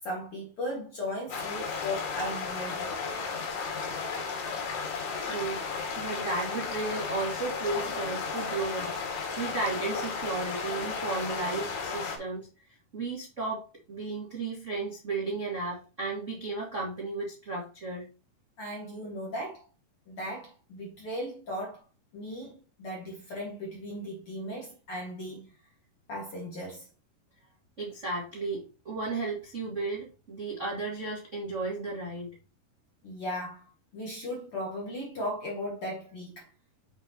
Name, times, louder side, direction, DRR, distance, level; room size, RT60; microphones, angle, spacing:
voice 1, 0.0-3.0 18.6-19.7 20.1-21.8 22.1-25.5 26.1-26.9 33.0-36.5, equal, 45° left, 2.0 m, -37 dB
sound 1, 1.3-12.2, left 5 dB, 85° left, 4.0 m, -34 dB
voice 2, 5.2-5.6 5.9-18.0 27.8-32.3, right 3 dB, 40° right, 1.0 m, -34 dB
7.1 x 6.5 x 2.9 m
omnidirectional pair, 4.7 m